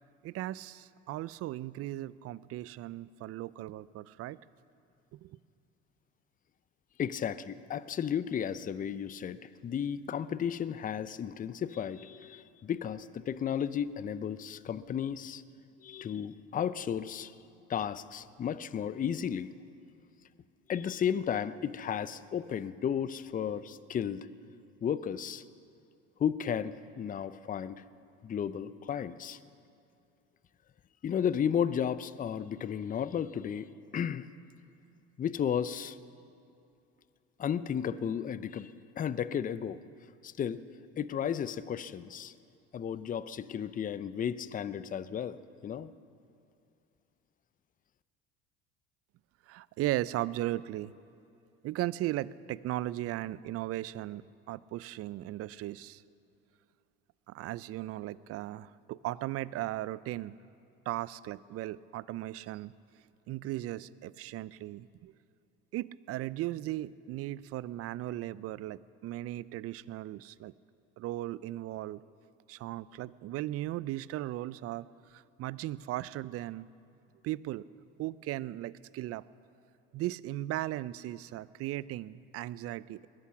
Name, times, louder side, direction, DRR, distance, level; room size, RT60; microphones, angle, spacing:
voice 1, 0.2-4.4 5.1-5.4 49.5-50.9 51.6-56.0 57.3-60.3 60.9-62.7 63.3-65.1 65.7-70.5 71.0-72.0 72.5-74.9 75.1-76.7 77.2-77.6 78.0-79.2 79.9-83.1, right 15 dB, 50° right, 19 dB, 0.5 m, -37 dB
voice 2, 7.0-15.4 15.8-17.3 17.7-19.5 20.7-24.3 24.8-25.4 26.2-27.8 28.2-29.4 31.0-34.3 35.2-36.0 37.4-39.8 40.2-40.6 41.0-42.3 42.7-45.4 45.6-45.9, left 8 dB, 25° left, 16 dB, 0.6 m, -33 dB
21.0 x 11.0 x 5.8 m, 2.6 s
hypercardioid pair, 75°, 31 cm